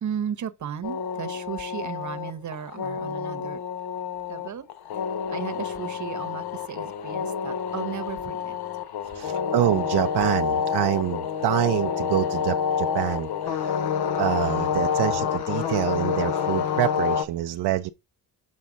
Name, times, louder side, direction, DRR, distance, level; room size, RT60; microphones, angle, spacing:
voice 1, 0.0-3.6 4.3-4.7 5.3-8.6, right 8 dB, 45° right, 0.9 m, -35 dB
sound 1, 0.8-17.2, left 7 dB, 70° left, 0.9 m, -28 dB
voice 2, 9.1-13.8 14.2-17.9, right 15 dB, 75° right, 0.5 m, -26 dB
7.5 x 4.2 x 3.9 m
cardioid pair, 65°, 40 cm